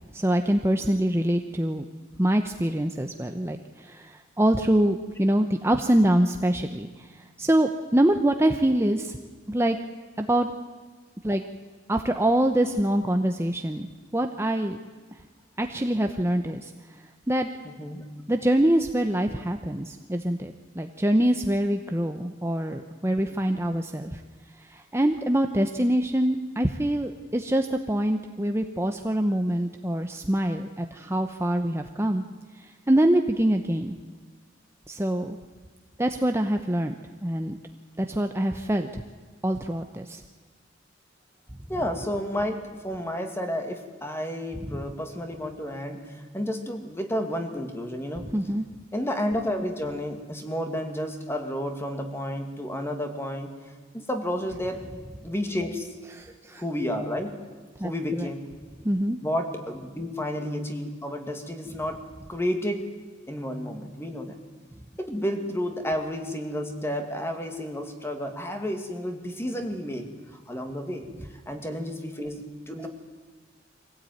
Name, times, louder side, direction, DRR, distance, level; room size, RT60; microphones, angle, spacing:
voice 1, 0.1-1.9 2.2-9.2 9.5-9.8 10.2-10.5 11.2-11.4 11.9-13.9 14.1-14.8 15.6-16.7 17.3-17.5 18.3-24.2 24.7-32.2 32.6-33.9 34.9-35.4 36.0-37.0 37.2-37.6 38.0-39.0 39.4-40.2 44.7-44.8 48.3-48.6 56.2-56.6 57.8-58.3 58.8-59.2, right 1 dB, 15° right, 5 dB, 0.9 m, -25 dB
voice 2, 17.6-18.0 41.7-48.3 48.9-53.6 53.9-54.8 55.2-55.9 56.6-57.5 57.8-58.6 59.2-62.9 63.3-64.4 65.0-71.1 71.5-72.9, equal, 15° left, 5 dB, 2.3 m, -31 dB
24.5 x 17.0 x 9.4 m, 1.4 s
head